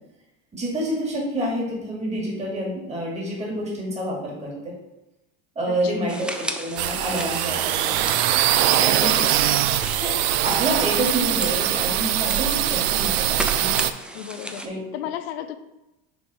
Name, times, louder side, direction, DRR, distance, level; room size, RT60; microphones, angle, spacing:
voice 1, 0.5-4.7 5.6-8.0 8.7-9.1 10.0-10.1 10.4-13.7 14.6-14.8, right 1 dB, 20° right, -3 dB, 2.1 m, -28 dB
voice 2, 5.7-6.1 9.0-9.6 14.1-14.7 14.9-15.6, left 11 dB, 90° left, 10 dB, 0.5 m, -34 dB
sound 1, 6.1-14.7, right 1 dB, 5° right, 0.4 m, -35 dB
sound 2, 6.8-13.9, right 12 dB, 80° right, 0.5 m, -22 dB
6.1 x 3.4 x 4.8 m, 0.96 s
supercardioid pair, 110°, 30 cm